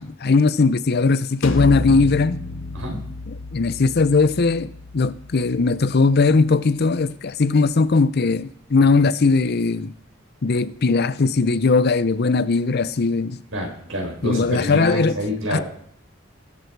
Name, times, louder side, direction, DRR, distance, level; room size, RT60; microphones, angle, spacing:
voice 1, 0.0-2.4 3.3-9.9 10.4-13.4 14.2-15.2 15.5-15.6, left 4 dB, 55° left, 0.6 m, -19 dB
sound 1, 1.4-7.1, left 2 dB, 85° left, 1.4 m, -32 dB
voice 2, 13.5-15.6, equal, 85° right, 5.0 m, -27 dB
20.0 x 8.0 x 4.7 m
head